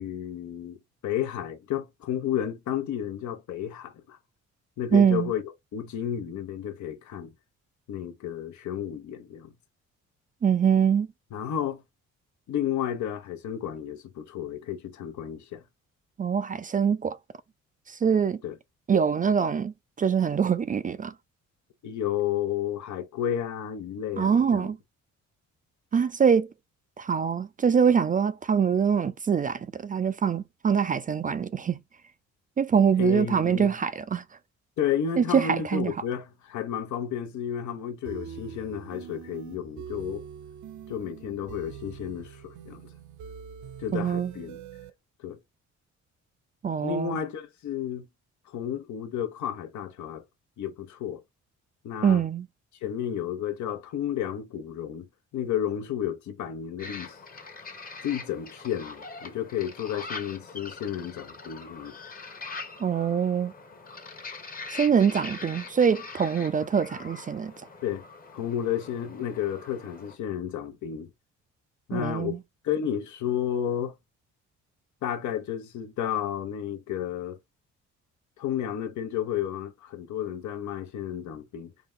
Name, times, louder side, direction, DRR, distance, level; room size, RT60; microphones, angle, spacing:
voice 1, 0.0-4.2 4.8-5.4 5.7-7.3 7.9-9.5 11.3-11.8 12.5-15.6 18.4-18.5 21.8-24.7 33.0-33.7 34.8-40.2 40.9-42.8 43.8-44.6 45.2-45.4 46.8-48.1 48.5-50.2 50.6-51.2 51.8-52.2 52.8-55.1 55.3-57.2 58.0-61.9 67.8-68.0 68.3-71.1 71.9-72.4 72.6-73.9 75.0-77.4 78.4-81.7, left 9 dB, 70° left, 0.9 m, -32 dB
voice 2, 4.9-5.3 10.4-11.1 16.2-17.2 17.9-18.4 18.9-21.1 24.2-24.8 25.9-26.5 27.0-31.8 32.6-34.2 35.2-35.9 43.9-44.3 46.6-47.1 52.0-52.5 62.8-63.5 64.7-67.5 71.9-72.4, right 7 dB, 30° right, 0.3 m, -24 dB
sound 1, 38.0-44.9, right 8 dB, 70° right, 0.7 m, -43 dB
sound 2, 56.8-70.2, left 4 dB, 30° left, 1.0 m, -42 dB
3.8 x 2.3 x 3.5 m
cardioid pair, 90°, 30 cm